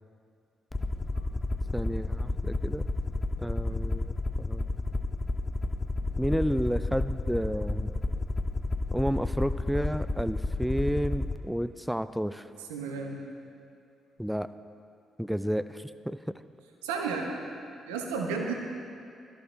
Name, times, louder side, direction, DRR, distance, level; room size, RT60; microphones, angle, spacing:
Aircraft, 0.7-11.4, left 2 dB, 25° left, 0.9 m, -31 dB
voice 1, 1.7-2.8 3.4-4.6 6.2-7.9 8.9-12.5 14.2-14.5 15.2-16.2, equal, 5° right, 13 dB, 0.5 m, -31 dB
voice 2, 12.7-13.2 16.8-17.3 17.9-18.5, right 5 dB, 85° right, 2 dB, 1.2 m, -32 dB
17.5 x 13.5 x 3.4 m, 2.4 s
hypercardioid pair, 45°, 0 cm